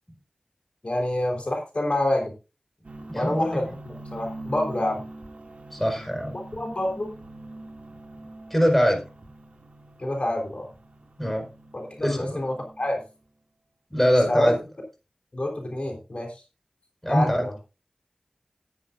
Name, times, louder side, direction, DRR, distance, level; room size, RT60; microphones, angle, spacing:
voice 1, 0.8-2.3 3.2-5.0 6.5-7.1 10.0-10.7 11.7-13.0 14.3-14.5 15.3-16.4 17.1-17.5, left 1 dB, 55° left, 2 dB, 3.8 m, -27 dB
sound 1, 2.8-13.1, right 2 dB, 70° right, 2.3 m, -43 dB
voice 2, 3.1-3.6 5.7-6.3 8.5-9.0 11.2-11.5 12.0-12.4 13.9-14.5 17.0-17.4, equal, 10° left, 3 dB, 4.7 m, -22 dB
13.5 x 10.5 x 2.5 m, 0.29 s
wide cardioid pair, 60°, 2 cm